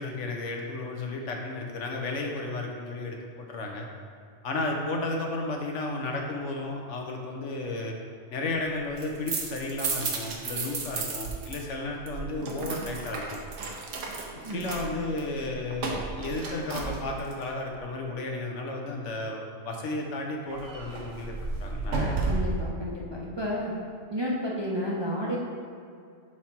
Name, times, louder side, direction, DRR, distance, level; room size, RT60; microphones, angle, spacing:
voice 1, 0.0-3.9 4.4-7.9 8.3-13.4 14.5-21.3 21.6-22.2, left 2 dB, 75° left, 1 dB, 1.2 m, -33 dB
sound 1, 8.8-11.6 11.8-17.4 20.5-22.7, right 3 dB, 80° right, 1.2 m, -33 dB
voice 2, 22.3-23.7 24.1-25.4, equal, 30° right, -4 dB, 0.6 m, -31 dB
4.8 x 4.2 x 5.9 m, 2.3 s
omnidirectional pair, 1.3 m